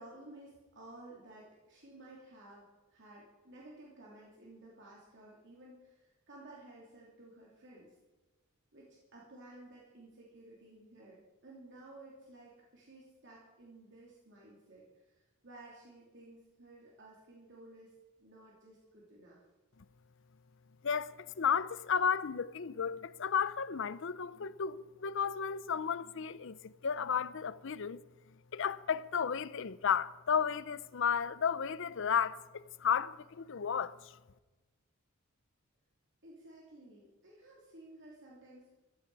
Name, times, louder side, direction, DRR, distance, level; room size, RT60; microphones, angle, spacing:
voice 1, 0.0-8.0 8.7-17.9 18.2-19.4 36.2-38.7, right 2 dB, 60° right, 3.0 m, -55 dB
voice 2, 20.8-28.0 28.5-34.0, left 7 dB, 60° left, 0.6 m, -33 dB
14.5 x 14.5 x 4.8 m
head